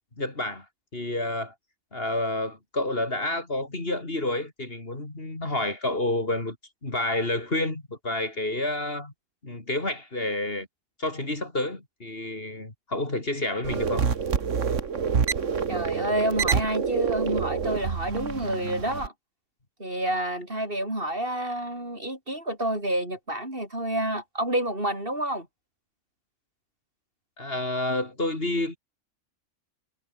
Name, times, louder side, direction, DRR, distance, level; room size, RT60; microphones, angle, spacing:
voice 1, 0.2-0.7 0.9-1.5 1.9-6.6 6.8-9.1 9.4-10.7 11.0-14.1 27.4-28.8, left 2 dB, 45° left, 4.1 m, -29 dB
sound 1, 13.6-19.1, right 6 dB, 70° right, 1.8 m, -27 dB
voice 2, 15.7-19.1 19.8-25.5, right 1 dB, 45° right, 8.3 m, -29 dB
omnidirectional pair, 1.3 m